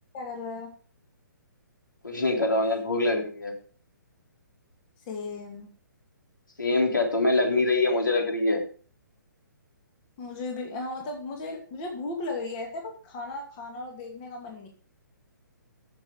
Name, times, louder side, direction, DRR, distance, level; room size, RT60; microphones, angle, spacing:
voice 1, 0.1-0.7 5.1-5.7 10.2-14.7, left 3 dB, 25° left, 2 dB, 2.5 m, -36 dB
voice 2, 2.0-3.5 6.6-8.6, left 2 dB, 75° left, 1 dB, 3.9 m, -24 dB
14.0 x 6.9 x 5.1 m, 0.42 s
figure-of-eight pair, 130°, 11 cm